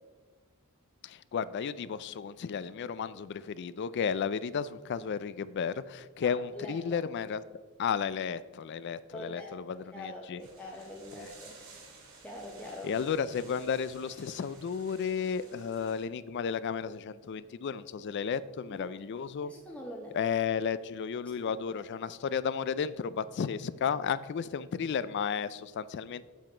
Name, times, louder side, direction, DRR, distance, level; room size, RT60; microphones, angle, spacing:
voice 1, 1.0-7.4 7.8-10.4 11.2-11.3 12.8-19.5 20.1-26.2, left 6 dB, 50° left, 16 dB, 0.3 m, -33 dB
voice 2, 6.2-7.0 9.1-9.5 9.9-11.6 12.2-13.0 18.7-18.9 19.4-20.2 21.5-21.6, left 1 dB, 5° left, -2 dB, 0.8 m, -44 dB
sound 1, 10.4-16.0, right 4 dB, 70° right, 2.3 m, -54 dB
7.7 x 7.2 x 4.3 m, 1.4 s
head